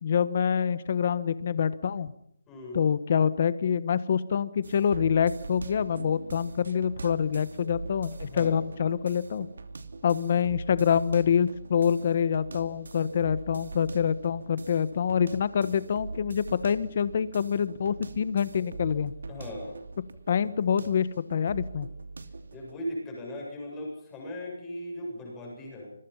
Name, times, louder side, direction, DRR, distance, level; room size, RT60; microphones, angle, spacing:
voice 1, 0.0-2.1 2.7-9.5 10.0-19.1 20.3-21.9, left 7 dB, 35° left, 15 dB, 1.2 m, -26 dB
voice 2, 2.5-2.8 8.3-8.7 19.3-19.8 22.5-25.9, left 1 dB, 10° left, -2 dB, 7.6 m, -38 dB
sound 1, 4.6-22.7, right 3 dB, 65° right, 2.9 m, -42 dB
27.0 x 22.5 x 5.7 m, 0.72 s
hypercardioid pair, 175°, 0 cm